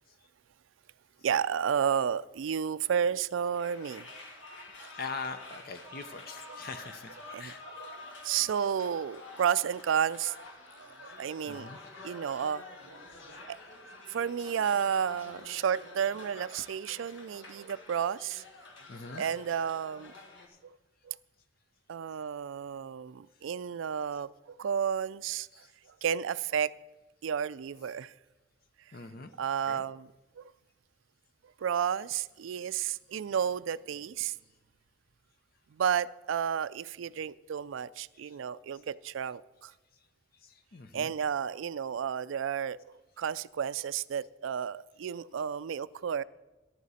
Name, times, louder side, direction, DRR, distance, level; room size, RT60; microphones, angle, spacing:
voice 1, 1.2-4.1 4.8-4.9 7.3-10.4 10.8-11.7 12.0-12.8 13.5-13.6 14.1-18.4 19.1-20.1 20.6-20.8 21.0-21.2 21.9-25.5 26.0-26.7 27.2-28.1 29.4-30.1 30.4-30.5 31.6-34.3 35.7-39.7 40.9-46.2, right 8 dB, 70° right, 18 dB, 0.3 m, -32 dB
sound 1, 3.5-20.5, left 2 dB, 70° left, 1.7 m, -49 dB
voice 2, 5.0-7.6 11.5-11.8 15.5-15.7 18.9-19.2 20.5-20.6 25.5-25.7 27.8-28.0 28.9-29.3 29.7-29.8 34.3-34.4 38.2-38.4 40.3-41.1, left 4 dB, 45° left, 9 dB, 0.6 m, -43 dB
14.0 x 11.0 x 4.2 m, 1.1 s
head